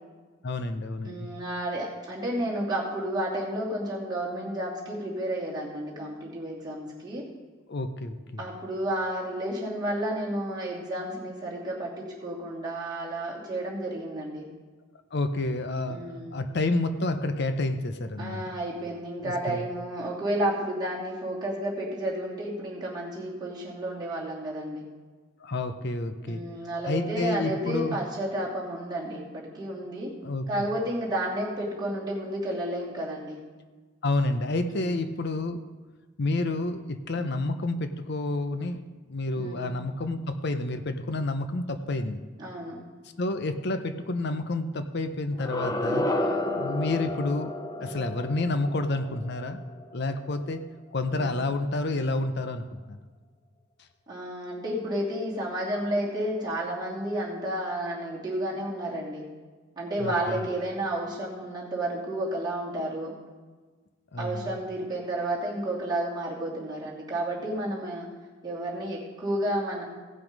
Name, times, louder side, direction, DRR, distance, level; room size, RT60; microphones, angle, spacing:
voice 1, 0.4-1.3 7.7-8.4 15.1-16.0 16.3-18.4 19.2-19.6 25.4-26.4 26.8-28.0 30.2-30.7 34.0-35.6 36.2-38.8 39.1-42.2 43.2-46.1 46.5-47.5 47.8-49.6 49.9-50.6 50.9-53.0 60.0-60.4 64.1-64.5, left 2 dB, 55° left, 9 dB, 0.7 m, -29 dB
voice 2, 1.0-7.2 8.4-14.5 15.9-16.4 18.2-24.8 26.3-30.1 30.5-33.4 34.7-35.0 37.1-37.3 39.3-39.7 42.4-42.8 46.1-46.5 47.8-48.1 51.1-51.4 54.1-59.3 59.8-63.1 64.2-68.1 68.4-69.8, right 1 dB, 20° right, -6 dB, 2.6 m, -31 dB
sound 1, 45.3-50.3, left 1 dB, 20° left, 0.7 m, -31 dB
16.5 x 6.0 x 5.2 m, 1.3 s
head